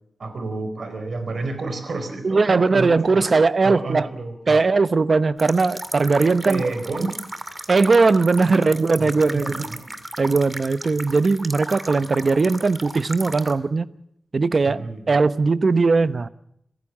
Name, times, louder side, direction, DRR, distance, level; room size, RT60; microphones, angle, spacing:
voice 1, 0.2-3.3 3.6-4.6 6.4-7.2 8.5-9.9 12.0-12.1 14.6-15.2, right 3 dB, 70° right, 4.4 m, -30 dB
voice 2, 2.2-4.1 4.5-6.6 7.0-7.1 7.7-9.5 10.2-13.9 14.3-16.3, right 4 dB, 55° right, 0.9 m, -19 dB
sound 1, 5.4-13.5, right 1 dB, 20° right, 2.3 m, -35 dB
27.0 x 15.0 x 7.4 m
wide cardioid pair, 90°, 0 cm